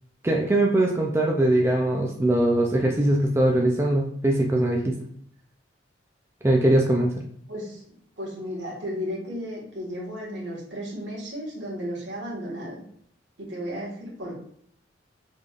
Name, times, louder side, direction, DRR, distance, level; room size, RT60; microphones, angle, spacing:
voice 1, 0.2-5.0 6.4-7.2, right 1 dB, 15° right, 0 dB, 0.4 m, -21 dB
voice 2, 7.5-7.8 8.2-12.8 13.4-14.4, equal, 70° right, -3 dB, 1.7 m, -34 dB
5.5 x 3.7 x 2.4 m, 0.63 s
head